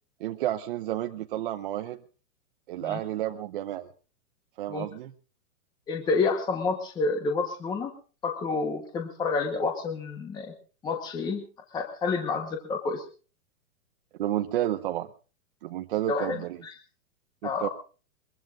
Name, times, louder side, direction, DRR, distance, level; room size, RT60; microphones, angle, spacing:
voice 1, 0.2-2.0 2.7-3.9 4.6-5.1 14.2-15.1 15.6-16.6 17.4-17.7, right 13 dB, 35° right, 6 dB, 0.9 m, -31 dB
voice 2, 5.9-7.9 8.2-10.5 10.8-11.4 11.7-13.0 16.1-16.7 17.4-17.7, left 4 dB, 10° left, 5 dB, 1.2 m, -29 dB
22.5 x 22.5 x 2.5 m, 0.37 s
hypercardioid pair, 165°, 44 cm